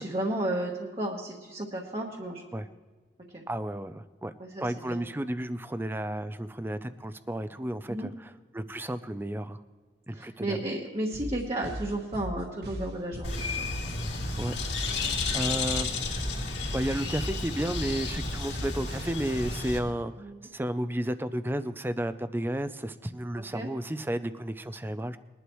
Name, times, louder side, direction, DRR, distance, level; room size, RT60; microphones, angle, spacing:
voice 1, 0.0-2.4 3.3-3.4 4.4-5.0 7.9-8.1 10.1-13.7 15.0-15.4 20.2-20.4 23.5-23.7, right 1 dB, 30° right, -2 dB, 1.2 m, -33 dB
voice 2, 3.5-4.3 4.6-9.6 10.1-10.6 14.4-14.5 14.9-15.9 16.7-25.2, right 1 dB, 10° right, 12 dB, 0.4 m, -32 dB
sound 1, 11.1-19.1, equal, 60° right, 1.9 m, -38 dB
Bird, 13.2-19.8, left 3 dB, 75° left, 2.6 m, -32 dB
21.5 x 11.5 x 3.1 m, 1.4 s
head